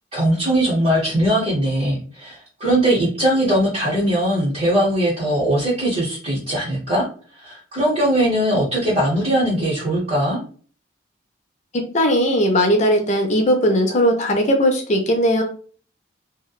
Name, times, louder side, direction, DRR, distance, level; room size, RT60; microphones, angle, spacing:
voice 1, 0.1-7.0 7.4-10.4, right 1 dB, 30° right, -8 dB, 0.8 m, -20 dB
voice 2, 11.7-15.4, equal, 35° left, 3 dB, 0.5 m, -18 dB
2.7 x 2.1 x 2.3 m, 0.41 s
head